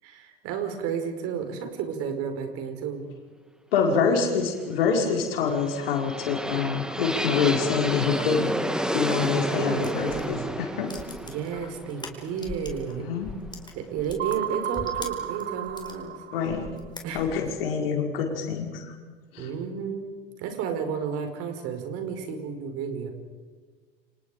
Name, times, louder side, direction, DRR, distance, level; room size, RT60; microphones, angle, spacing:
voice 1, 0.0-3.0 9.2-10.6 11.2-13.1 13.7-16.2 17.0-17.3 19.4-20.1 20.4-23.1, right 7 dB, 50° right, 6 dB, 5.3 m, -32 dB
voice 2, 3.7-8.5 8.9-10.9 13.0-13.3 16.3-16.7 17.1-18.9 19.3-19.5, left 6 dB, 70° left, 1 dB, 5.4 m, -26 dB
sound 1, 5.4-13.3, equal, ahead, 2.3 m, -31 dB
sound 2, 9.8-12.9 13.2-16.0 16.4-17.5, left 3 dB, 15° left, 4.9 m, -41 dB
sound 3, 14.2-16.8, right 12 dB, 35° right, 1.1 m, -33 dB
30.0 x 26.5 x 5.2 m, 1.5 s
hypercardioid pair, 75°, 30 cm